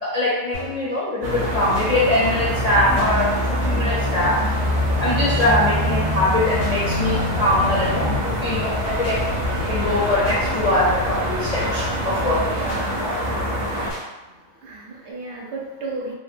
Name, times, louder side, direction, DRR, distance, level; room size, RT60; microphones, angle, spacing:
voice 1, 0.0-4.4 5.0-9.2 9.6-12.6, left 1 dB, 60° left, -7 dB, 0.4 m, -22 dB
sound 1, 0.5-0.9 1.7-1.9 3.0-3.1 4.2-4.5 5.4-5.6 6.6-6.8 7.8-8.2 9.0-9.2 10.2-10.4 11.5-11.8 12.7-12.9 13.9-14.1, equal, 85° left, 1.1 m, -36 dB
voice 2, 0.9-1.3 14.6-16.1, right 3 dB, 75° right, -2 dB, 0.9 m, -34 dB
sound 2, 1.2-13.9, equal, 55° right, 0.5 m, -24 dB
2.8 x 2.1 x 2.4 m, 1.1 s
omnidirectional pair, 1.2 m